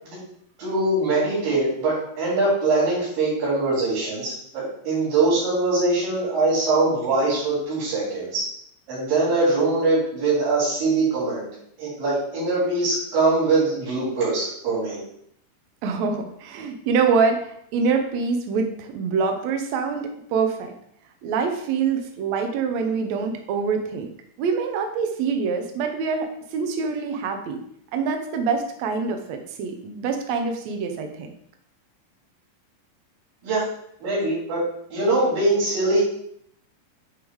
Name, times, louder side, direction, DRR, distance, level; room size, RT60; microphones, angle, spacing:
voice 1, 0.6-8.4 8.9-11.5 11.8-15.0 33.4-33.7 34.0-34.6 34.9-36.0, right 2 dB, 90° right, -11 dB, 5.0 m, -22 dB
voice 2, 15.8-20.7 21.2-24.1 24.4-27.6 27.9-31.3, right 5 dB, 65° right, 5 dB, 1.9 m, -25 dB
10.0 x 3.5 x 4.7 m, 0.70 s
omnidirectional pair, 3.9 m